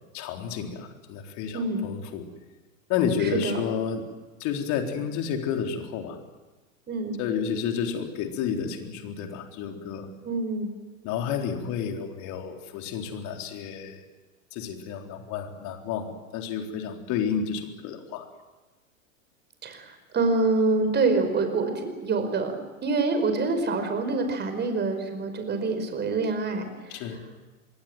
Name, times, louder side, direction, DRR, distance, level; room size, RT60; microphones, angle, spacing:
voice 1, 0.1-2.3 2.9-4.1 4.4-6.2 7.2-10.1 11.0-14.0 14.5-18.3 26.9-27.3, left 7 dB, 45° left, 4 dB, 3.9 m, -30 dB
voice 2, 1.5-1.9 3.2-3.6 6.9-7.2 10.2-10.7 19.6-22.5 22.8-26.7, right 3 dB, 25° right, 7 dB, 5.3 m, -26 dB
25.5 x 23.0 x 7.8 m, 1.2 s
figure-of-eight pair, 90°, 41 cm